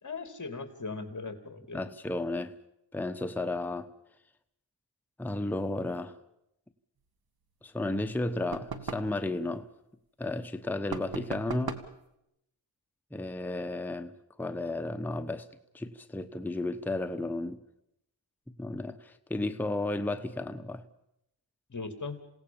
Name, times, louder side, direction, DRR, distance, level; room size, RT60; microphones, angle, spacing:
voice 1, 0.0-1.8 21.7-22.2, left 4 dB, 40° left, 3.0 m, -38 dB
voice 2, 1.7-2.5 2.9-3.9 5.2-6.2 7.6-9.7 10.2-11.8 13.1-14.1 14.4-15.5 15.7-17.6 18.6-20.8, left 2 dB, 5° left, 1.0 m, -33 dB
sound 1, 8.5-9.2 10.9-12.0, right 5 dB, 50° right, 2.1 m, -38 dB
28.5 x 17.0 x 7.2 m
cardioid pair, 75°, 47 cm